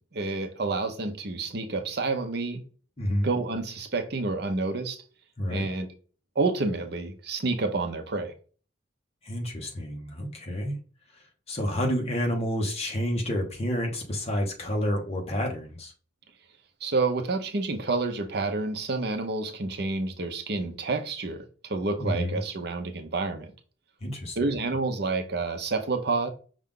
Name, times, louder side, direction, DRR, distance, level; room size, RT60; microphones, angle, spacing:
voice 1, 0.1-2.6 3.2-5.0 5.5-5.9 6.4-8.3 16.8-23.5 24.4-26.3, right 3 dB, 60° right, 0.7 m, -29 dB
voice 2, 3.0-3.3 5.4-5.7 9.2-10.8 11.5-15.9 22.0-22.4 24.0-24.4, equal, 35° left, 1.1 m, -29 dB
5.5 x 2.4 x 3.7 m
head